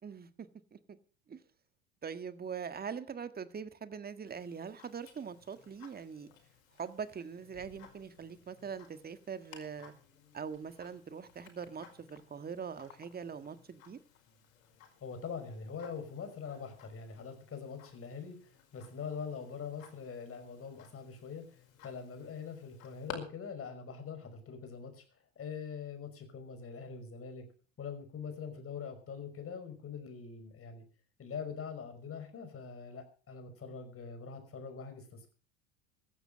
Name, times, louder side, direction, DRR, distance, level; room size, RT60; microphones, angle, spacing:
voice 1, 0.0-1.0 1.3-1.4 2.0-6.3 6.7-9.9 10.3-14.0, right 6 dB, 20° right, 1.7 m, -42 dB
Tick-tock, 4.3-23.1, left 8 dB, 75° left, 5.2 m, -56 dB
voice 2, 15.0-25.0 25.4-27.5 27.8-30.8 31.2-35.3, left 6 dB, 35° left, 5.5 m, -43 dB
15.0 x 11.5 x 6.4 m
hypercardioid pair, 80°, 41 cm